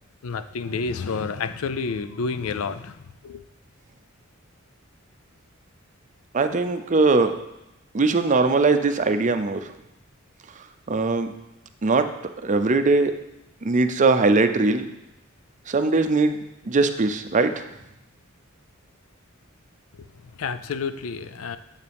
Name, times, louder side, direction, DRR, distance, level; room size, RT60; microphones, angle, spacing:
voice 1, 0.2-3.4 19.9-20.1 20.4-21.6, left 5 dB, 85° left, 12 dB, 0.5 m, -30 dB
voice 2, 6.3-7.3 7.9-9.7 10.9-11.3 11.8-12.1 12.4-13.1 13.6-14.8 15.7-16.4 16.6-17.6, right 3 dB, 35° right, 9 dB, 0.5 m, -20 dB
9.4 x 7.2 x 3.5 m, 0.88 s
head